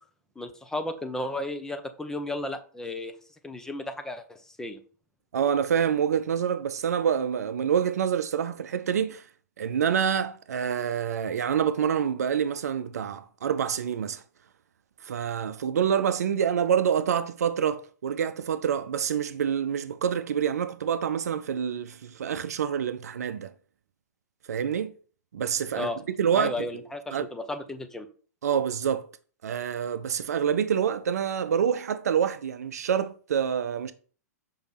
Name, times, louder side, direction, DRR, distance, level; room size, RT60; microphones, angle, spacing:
voice 1, 0.4-3.1 3.4-4.8 25.7-26.0 26.3-28.1, left 1 dB, 5° left, 0.7 m, -34 dB
voice 2, 5.3-9.2 9.6-14.2 15.0-23.5 24.5-24.9 25.3-25.9 26.2-26.7 27.1-27.2 28.4-29.1 29.4-33.9, right 8 dB, 65° right, 0.6 m, -27 dB
5.5 x 3.5 x 5.7 m
figure-of-eight pair, 110°, 9 cm